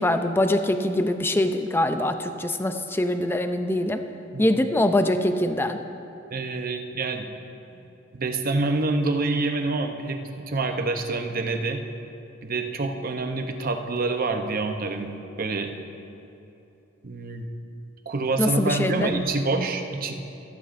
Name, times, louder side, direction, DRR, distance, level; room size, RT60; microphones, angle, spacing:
voice 1, 0.0-4.0 4.4-5.8 18.4-19.1, left 1 dB, 10° left, 7 dB, 0.5 m, -23 dB
voice 2, 6.3-7.3 8.1-10.2 10.5-11.8 12.4-15.1 15.4-15.7 17.0-17.5 18.1-20.1, right 3 dB, 50° right, 5 dB, 0.7 m, -26 dB
14.5 x 13.5 x 2.6 m, 2.8 s
head